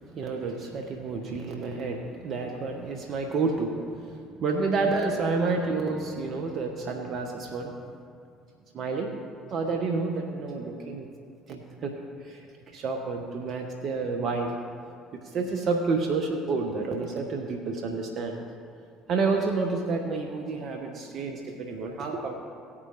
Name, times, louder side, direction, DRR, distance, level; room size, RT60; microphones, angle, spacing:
voice 1, 0.1-7.7 8.7-9.1 9.5-11.1 11.5-11.9 12.2-12.4 12.7-14.5 15.1-18.4 19.1-22.3, right 4 dB, 55° right, 2 dB, 1.1 m, -29 dB
17.0 x 9.7 x 2.6 m, 2.3 s
hypercardioid pair, 60°, 0 cm